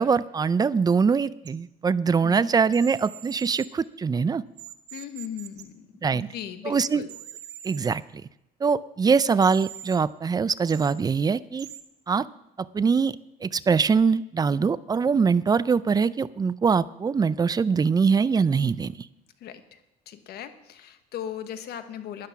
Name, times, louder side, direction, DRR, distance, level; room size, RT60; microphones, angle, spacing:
voice 1, 0.0-4.4 6.0-6.3 6.6-7.0 7.6-8.0 8.6-11.7 12.1-12.2 12.6-13.1 13.4-19.0, right 5 dB, 25° right, 17 dB, 0.4 m, -23 dB
sound 1, 1.5-1.6 2.7-3.7 4.6-5.6 7.0-7.9 9.4-10.0 10.7-10.9 11.6-11.8, right 11 dB, 80° right, 1.1 m, -42 dB
voice 2, 4.9-7.1 19.4-19.8 20.1-22.3, left 9 dB, 70° left, 10 dB, 1.3 m, -38 dB
12.5 x 10.5 x 5.8 m, 0.86 s
cardioid pair, 110°, 17 cm